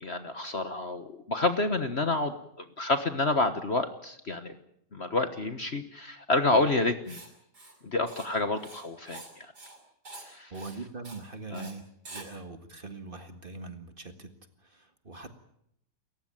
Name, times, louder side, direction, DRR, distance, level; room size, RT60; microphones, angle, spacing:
voice 1, 0.0-4.6 4.9-7.2 7.8-9.5 10.2-10.5 11.5-11.7, left 2 dB, 40° left, 8 dB, 1.4 m, -29 dB
Writing, 7.1-7.3 7.5-7.8 8.1-8.3 8.5-9.3 9.6-9.8 10.0-10.3 10.5-10.8 11.0-11.2 11.5-11.7 12.1-12.3, right 2 dB, 65° right, 6.5 m, -46 dB
voice 2, 10.5-14.3 14.6-15.3, right 3 dB, 30° right, 7 dB, 1.9 m, -42 dB
29.0 x 15.0 x 9.0 m, 0.76 s
omnidirectional pair, 1.9 m